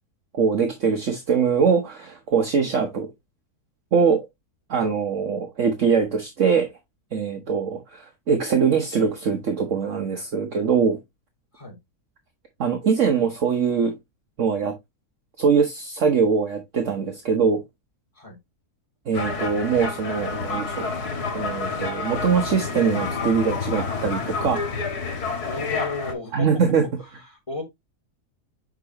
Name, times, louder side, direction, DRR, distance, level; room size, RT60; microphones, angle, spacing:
voice 1, 0.3-3.1 3.9-4.3 4.7-6.7 7.1-11.0 12.6-13.9 14.4-14.7 15.4-17.6 19.1-20.9 21.3-24.6 26.3-26.8, right 6 dB, 55° right, 1.3 m, -22 dB
sound 1, 19.1-26.1, left 4 dB, 85° left, 1.9 m, -29 dB
voice 2, 25.5-26.5 27.0-27.6, left 3 dB, 20° left, 3.1 m, -33 dB
7.3 x 5.1 x 2.9 m
omnidirectional pair, 1.6 m